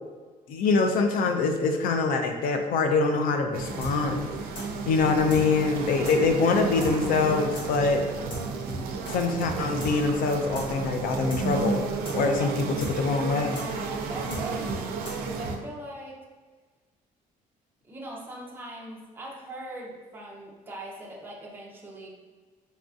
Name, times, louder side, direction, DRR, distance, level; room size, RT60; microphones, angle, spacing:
voice 1, 0.5-4.3 4.9-8.0 9.1-11.8 12.1-12.5 13.0-13.6, left 4 dB, 70° left, 5 dB, 0.4 m, -24 dB
sound 1, 3.5-15.6, right 4 dB, 85° right, 0.4 m, -32 dB
sound 2, 3.8-9.1 9.4-9.5 9.8-15.5, equal, 40° left, 0.8 m, -38 dB
voice 2, 5.9-6.3 12.4-12.5 13.4-16.2 17.8-22.1, right 1 dB, 15° right, -3 dB, 0.5 m, -41 dB
4.0 x 2.6 x 2.3 m, 1.4 s
cardioid pair, 155°, 15 cm